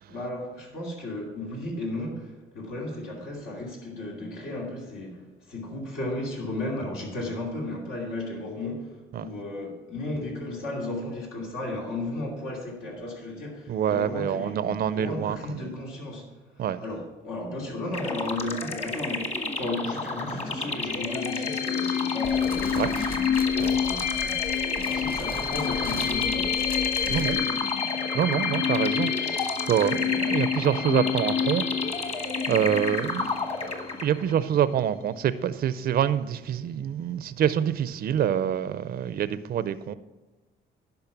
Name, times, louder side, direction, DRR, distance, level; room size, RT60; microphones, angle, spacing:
voice 1, 0.1-24.4 24.8-27.6, left 2 dB, 90° left, 2.8 m, -35 dB
voice 2, 13.7-15.7 16.6-16.8 22.8-22.9 23.6-23.8 27.1-27.4 28.1-33.5 34.0-39.9, right 9 dB, 50° right, 0.4 m, -26 dB
sound 1, 17.9-34.3, left 3 dB, 30° left, 1.3 m, -32 dB
sound 2, 20.8-34.2, left 8 dB, 70° left, 1.0 m, -28 dB
Fire, 22.2-27.4, left 3 dB, 50° left, 1.6 m, -39 dB
10.5 x 5.5 x 5.8 m
cardioid pair, 90°, 20 cm